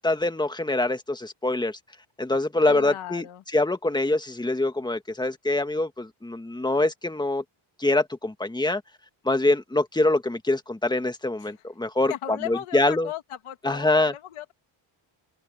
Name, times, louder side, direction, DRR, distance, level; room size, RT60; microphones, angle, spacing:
voice 1, 0.0-1.8 2.2-3.2 3.5-7.4 7.8-8.8 9.2-13.1 13.6-14.1, left 2 dB, 10° left, 1.7 m, -24 dB
voice 2, 2.7-3.4 11.4-11.6 12.1-14.5, left 12 dB, 85° left, 2.2 m, -36 dB
open air
cardioid pair, 100°, 48 cm